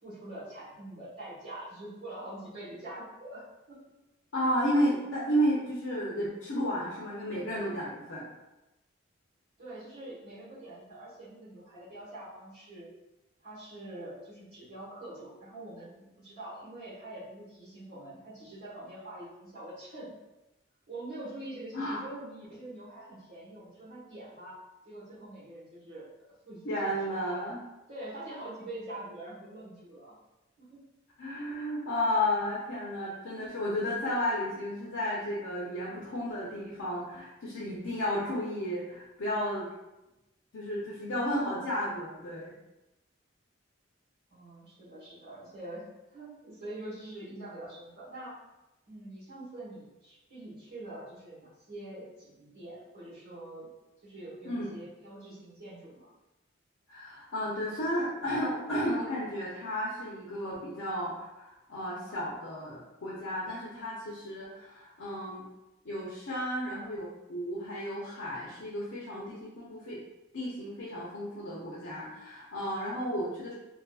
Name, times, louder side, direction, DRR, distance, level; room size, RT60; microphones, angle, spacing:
voice 1, 0.0-3.8 4.4-4.5 9.6-12.9 13.4-20.1 20.9-24.6 24.8-27.4 27.9-30.1 30.6-30.8 41.4-41.7 44.3-48.4 48.9-53.7 54.0-56.1, right 1 dB, 90° right, -13 dB, 1.2 m, -45 dB
voice 2, 4.3-8.2 21.7-22.0 26.6-27.6 31.2-39.7 40.5-42.5 54.4-54.7 56.9-65.4 65.8-70.0 70.3-73.5, equal, 75° left, -6 dB, 0.5 m, -33 dB
2.7 x 2.4 x 2.3 m, 0.98 s
head